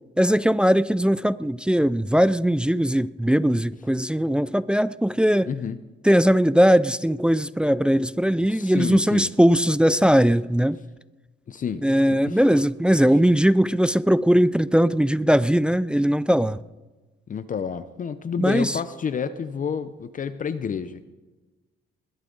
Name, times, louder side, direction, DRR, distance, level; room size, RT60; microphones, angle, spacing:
voice 1, 0.2-5.5 6.0-10.8 11.8-16.6 18.4-18.8, equal, 5° right, 0.3 m, -20 dB
voice 2, 5.4-5.8 8.5-9.3 11.5-11.8 12.3-12.4 17.3-21.1, left 7 dB, 40° left, 0.7 m, -29 dB
21.0 x 11.5 x 3.9 m
cardioid pair, 90°, 20 cm